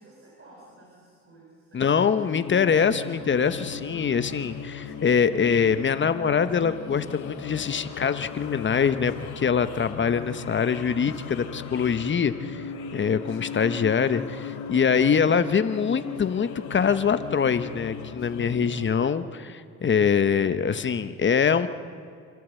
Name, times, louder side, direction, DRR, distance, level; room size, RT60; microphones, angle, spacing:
voice 1, 0.0-2.2, right 1 dB, 45° right, -4 dB, 7.5 m, -51 dB
voice 2, 1.7-12.6 12.9-21.7, left 6 dB, 40° left, 11 dB, 0.9 m, -24 dB
sound 1, 2.2-18.9, left 6 dB, 80° left, 3.3 m, -38 dB
28.0 x 12.5 x 8.3 m, 2.2 s
cardioid pair, 90°, 30 cm